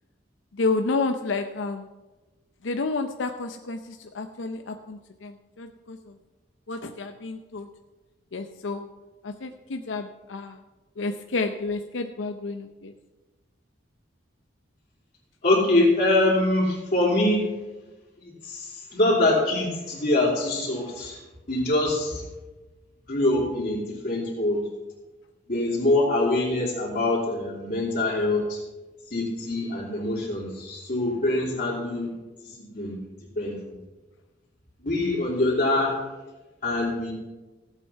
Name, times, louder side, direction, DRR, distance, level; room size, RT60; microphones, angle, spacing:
voice 1, 0.5-1.9 2.6-6.1 6.7-7.7 8.3-8.9 9.2-10.6 11.0-12.9, left 3 dB, 85° left, 7 dB, 0.6 m, -30 dB
voice 2, 15.4-17.4 18.2-21.2 21.5-22.2 23.1-24.6 25.5-28.6 29.1-32.1 32.7-32.9 33.3-33.8 34.8-35.9 36.6-37.1, left 2 dB, 45° left, -9 dB, 3.3 m, -24 dB
14.5 x 8.3 x 5.7 m, 1.2 s
head